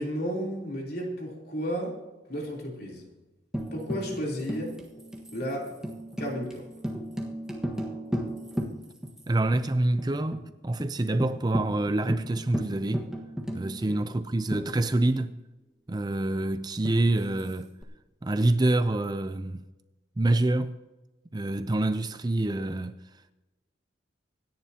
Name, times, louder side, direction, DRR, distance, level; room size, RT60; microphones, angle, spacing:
voice 1, 0.0-2.0 2.3-3.1 3.7-4.8 5.3-5.7 6.2-6.7 13.9-14.0, equal, 55° left, 3.4 m, -33 dB
Tambourine, 3.5-9.2 9.5-9.6 10.0-10.4 10.8-10.9 11.2-15.3 16.8-17.8, equal, 5° right, 1.4 m, -35 dB
voice 2, 9.3-13.1 13.5-15.3 15.9-17.7 18.2-19.6 20.2-20.8 21.3-22.9, right 2 dB, 20° right, 0.4 m, -26 dB
25.5 x 10.5 x 2.9 m
head